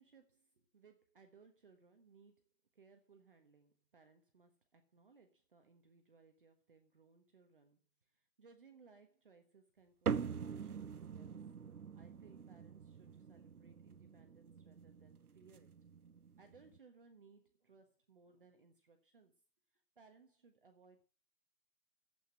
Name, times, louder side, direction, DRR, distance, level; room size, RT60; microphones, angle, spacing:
voice 1, 0.0-11.4 11.9-15.8 16.4-19.3 19.7-21.0, right 4 dB, 30° right, 6 dB, 1.4 m, -65 dB
sound 1, 10.1-16.8, right 6 dB, 60° right, 0.8 m, -44 dB
12.0 x 8.5 x 7.6 m, 0.38 s
figure-of-eight pair, 165°, 50 cm